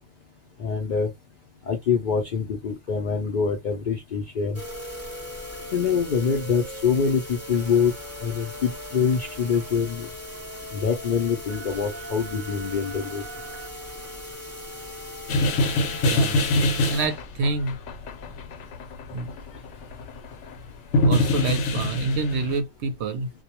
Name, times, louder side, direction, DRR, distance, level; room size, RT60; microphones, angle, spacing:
voice 1, 0.6-1.1 1.7-4.6 5.7-7.9 8.2-10.1 10.7-13.2, left 6 dB, 55° left, 0.6 m, -25 dB
sound 1, 4.5-17.1, equal, 15° right, 0.7 m, -38 dB
sound 2, 15.3-20.7 20.9-22.6, left 1 dB, 85° left, 0.9 m, -24 dB
voice 2, 16.0-16.4 16.7-17.8 19.1-19.3 21.0-23.3, right 3 dB, 75° right, 0.8 m, -27 dB
2.3 x 2.1 x 2.8 m
omnidirectional pair, 1.2 m